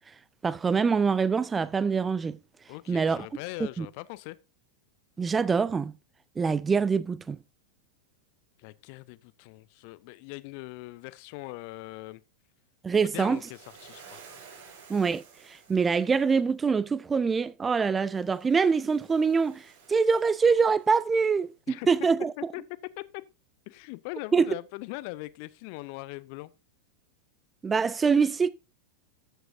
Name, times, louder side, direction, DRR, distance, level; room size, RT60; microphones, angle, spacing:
voice 1, 0.4-2.4 2.9-3.3 3.8-3.9 5.2-5.9 6.4-7.4 12.8-13.4 14.9-22.3 24.3-24.5 27.6-28.5, right 5 dB, 15° right, 0.4 m, -24 dB
voice 2, 2.7-4.4 8.6-12.2 13.0-14.2 21.7-21.9 22.5-22.6 23.0-23.2 23.7-26.5, left 21 dB, 45° left, 0.6 m, -41 dB
Waves surf, 13.1-16.3 18.1-21.2, right 6 dB, 50° right, 5.5 m, -53 dB
13.5 x 7.9 x 2.7 m
figure-of-eight pair, 90°, 0 cm